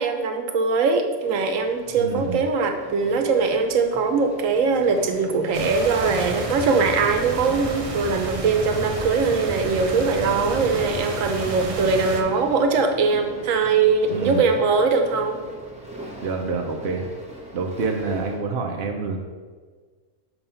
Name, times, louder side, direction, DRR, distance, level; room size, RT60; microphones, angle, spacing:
voice 1, 0.0-15.4, right 4 dB, 85° right, 5 dB, 1.1 m, -21 dB
sound 1, 1.2-18.4, right 1 dB, 5° right, 0.9 m, -41 dB
voice 2, 2.0-2.4 14.1-14.4 16.2-17.2 17.5-19.2, right 4 dB, 60° right, 2 dB, 0.8 m, -27 dB
sound 2, 5.5-12.2, right 2 dB, 45° right, 0.4 m, -31 dB
7.1 x 2.9 x 5.5 m, 1.5 s
omnidirectional pair, 1.3 m